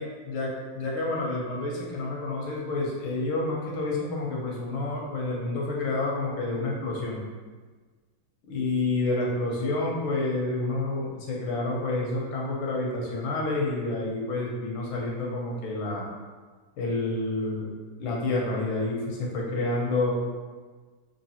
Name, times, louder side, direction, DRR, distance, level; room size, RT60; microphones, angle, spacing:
voice 1, 0.0-7.2 8.5-16.1 16.8-17.7 18.0-20.1, left 2 dB, 80° left, -3 dB, 1.6 m, -29 dB
3.9 x 2.9 x 2.8 m, 1.4 s
omnidirectional pair, 2.3 m